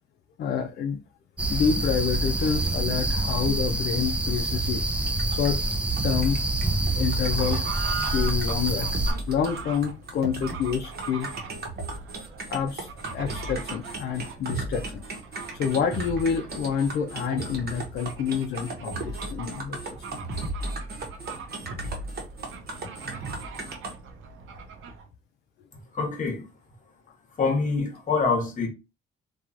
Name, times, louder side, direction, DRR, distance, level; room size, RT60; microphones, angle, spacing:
voice 1, 0.4-1.0 1.5-5.6 6.0-6.4 6.9-7.7 8.1-8.9 9.3-11.3 12.5-15.0 15.6-20.1, left 7 dB, 55° left, 0.4 m, -28 dB
sound 1, 1.4-9.1, right 2 dB, 5° right, 0.5 m, -26 dB
sound 2, 5.1-23.9, right 2 dB, 50° right, 0.9 m, -35 dB
Fowl / Bird, 7.0-25.1, right 5 dB, 75° right, 0.6 m, -41 dB
voice 2, 25.7-26.5 27.4-28.7, left 4 dB, 40° left, 1.0 m, -26 dB
2.9 x 2.3 x 2.4 m
cardioid pair, 90°, 20 cm